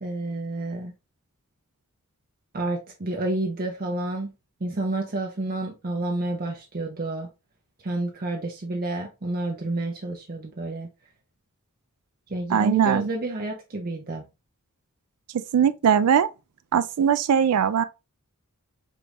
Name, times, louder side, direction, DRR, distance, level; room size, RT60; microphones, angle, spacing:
voice 1, 0.0-0.9 2.5-4.3 4.6-7.3 7.8-10.9 12.3-14.2, right 2 dB, 40° right, 0.7 m, -29 dB
voice 2, 12.5-13.1 15.3-16.3 16.7-17.8, right 8 dB, 75° right, 0.4 m, -20 dB
5.1 x 3.3 x 2.4 m
head